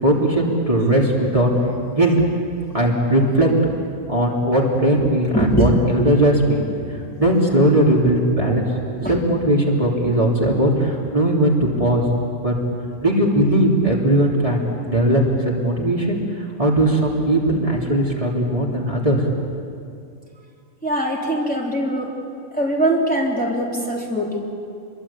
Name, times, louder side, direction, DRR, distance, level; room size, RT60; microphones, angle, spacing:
voice 1, 0.0-1.5 1.9-2.3 2.7-3.5 4.1-6.6 7.2-8.7 9.1-12.0 12.4-12.5 13.0-19.4, right 1 dB, 25° right, -3 dB, 3.5 m, -18 dB
voice 2, 5.3-5.7 6.0-6.1 6.8-6.9 9.0-9.1 20.8-22.1 22.6-24.4, right 1 dB, 5° left, -3 dB, 3.6 m, -21 dB
28.0 x 23.0 x 8.8 m, 2.4 s
omnidirectional pair, 1.3 m